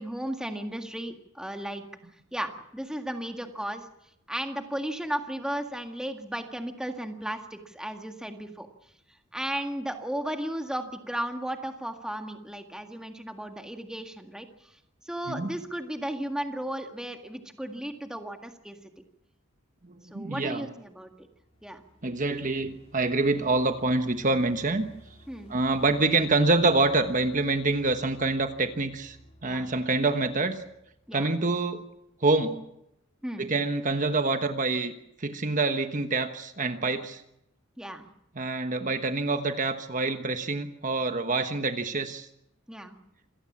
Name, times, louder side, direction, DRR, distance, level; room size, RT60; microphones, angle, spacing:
voice 1, 0.0-1.9 2.3-3.9 4.3-8.7 9.3-14.5 15.1-18.8 20.1-21.1 21.6-21.8 25.3-25.5 29.4-29.7 31.1-31.3 33.2-33.5 37.8-38.0 42.7-43.0, right 1 dB, 5° right, 5 dB, 1.8 m, -35 dB
voice 2, 19.8-20.7 22.0-24.9 25.5-29.2 29.4-30.6 31.1-31.8 32.2-32.7 33.4-34.9 35.2-37.2 38.3-42.3, right 3 dB, 40° right, 8 dB, 1.2 m, -26 dB
sound 1, 21.0-31.1, equal, 30° left, 4.1 m, -54 dB
27.0 x 18.0 x 7.4 m, 0.82 s
head